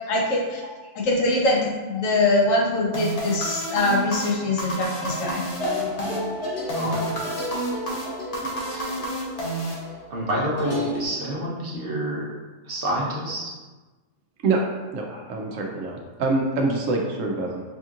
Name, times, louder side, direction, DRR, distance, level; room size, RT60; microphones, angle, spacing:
voice 1, 0.1-0.6 0.9-5.5, left 2 dB, 85° left, -2 dB, 1.2 m, -23 dB
sound 1, 2.9-10.3, right 1 dB, 40° left, 0.6 m, -30 dB
sound 2, 5.1-11.1, left 1 dB, 55° left, 1.4 m, -32 dB
voice 2, 6.7-7.2 8.7-8.9 10.1-12.2 12.6-13.5 15.1-15.3 15.5-15.6, right 1 dB, 50° right, -5 dB, 1.0 m, -29 dB
voice 3, 14.9-17.6, right 3 dB, 80° right, 1 dB, 1.0 m, -25 dB
5.1 x 2.8 x 2.5 m, 1.2 s
omnidirectional pair, 1.3 m